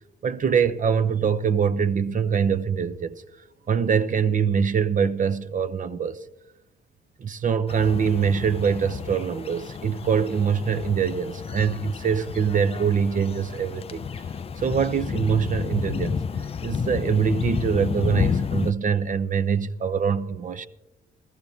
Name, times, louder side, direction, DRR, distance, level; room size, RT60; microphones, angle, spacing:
voice 1, 0.2-3.2 3.7-6.2 7.2-14.0 14.6-16.2 16.6-20.7, right 6 dB, 40° right, 0.7 m, -24 dB
sound 1, 7.7-18.7, left 6 dB, 30° left, 0.4 m, -31 dB
15.5 x 14.0 x 2.8 m
cardioid pair, 90°, 20 cm